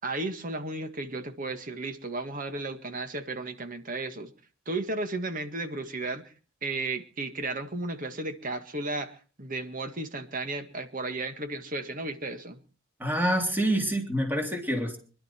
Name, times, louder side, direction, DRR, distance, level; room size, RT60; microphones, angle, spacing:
voice 1, 0.0-4.3 4.7-6.3 6.6-12.6, right 2 dB, 45° right, 8 dB, 1.8 m, -34 dB
voice 2, 13.0-15.0, right 1 dB, 10° right, 3 dB, 3.3 m, -27 dB
24.5 x 12.0 x 4.5 m, 0.39 s
head